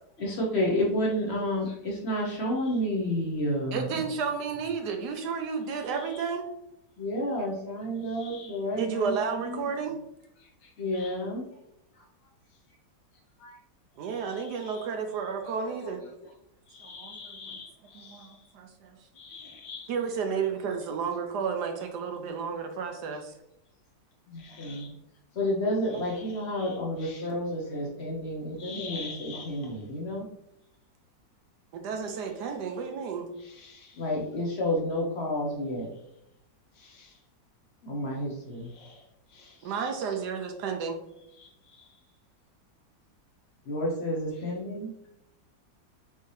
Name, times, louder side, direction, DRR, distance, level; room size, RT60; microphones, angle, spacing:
voice 1, 0.2-4.0 7.0-9.7 10.8-11.4 15.6-16.3 20.3-20.4 24.3-24.9 25.3-30.3 34.0-35.9 37.8-38.7 39.6-39.7 43.7-44.9, left 1 dB, 50° left, -1 dB, 0.8 m, -30 dB
voice 2, 3.7-6.4 8.8-10.0 14.0-16.0 16.8-17.1 18.0-19.0 19.9-23.3 31.7-33.3 39.6-41.0, right 6 dB, 75° right, 5 dB, 1.1 m, -32 dB
voice 3, 5.8-6.3 8.0-8.6 10.4-11.3 11.9-12.1 12.5-12.8 13.4-13.6 14.0-14.9 15.4-15.5 16.7-18.5 19.1-19.9 24.3-24.9 25.8-27.3 28.6-29.9 33.4-34.1 36.7-37.2 38.6-39.6 41.3-42.0 44.3-44.5, left 4 dB, 80° left, 0 dB, 1.7 m, -47 dB
5.4 x 2.7 x 3.1 m, 0.79 s
omnidirectional pair, 1.9 m